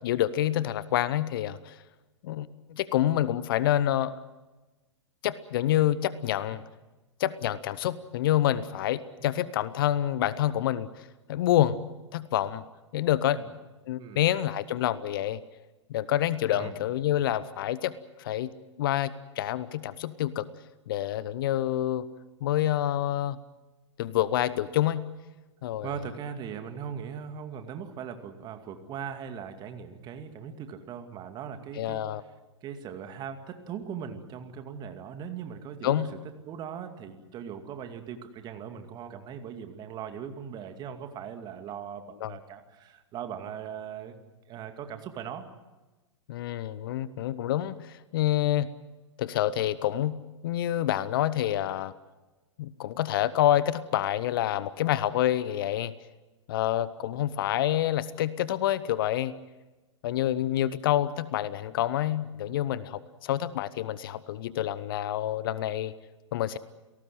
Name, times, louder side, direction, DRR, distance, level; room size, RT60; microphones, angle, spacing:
voice 1, 0.0-1.8 2.2-4.1 5.2-6.6 7.2-10.9 11.3-11.8 12.1-12.6 12.9-13.4 13.9-15.4 15.9-17.9 18.2-18.5 18.8-20.5 20.9-22.0 22.4-23.4 24.0-25.1 25.6-25.9 31.8-32.2 35.8-36.1 42.2-42.4 46.3-48.7 49.2-50.2 50.4-51.9 52.6-55.9 56.5-59.3 60.0-65.9 66.3-66.6, left 12 dB, 50° left, 17 dB, 0.9 m, -27 dB
voice 2, 25.8-32.0 32.6-36.1 36.4-44.2 44.5-45.5, right 7 dB, 25° right, 7 dB, 2.4 m, -39 dB
29.0 x 18.0 x 7.8 m, 1.1 s
figure-of-eight pair, 105°, 15 cm